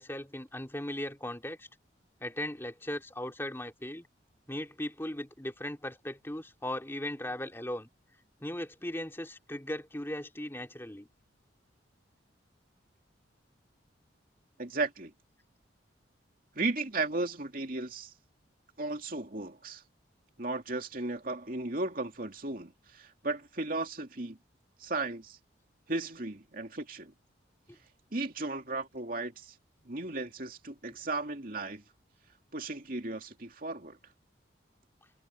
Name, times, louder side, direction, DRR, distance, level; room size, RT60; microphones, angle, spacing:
voice 1, 0.0-1.7 2.2-4.1 4.5-7.9 8.4-11.1 27.7-27.8, left 1 dB, 15° left, 2.7 m, -38 dB
voice 2, 14.6-15.1 16.5-18.1 18.8-19.8 20.4-24.4 24.8-25.4 25.9-27.1 28.1-29.5 29.8-31.8 32.5-34.0, right 2 dB, 50° right, 2.7 m, -35 dB
head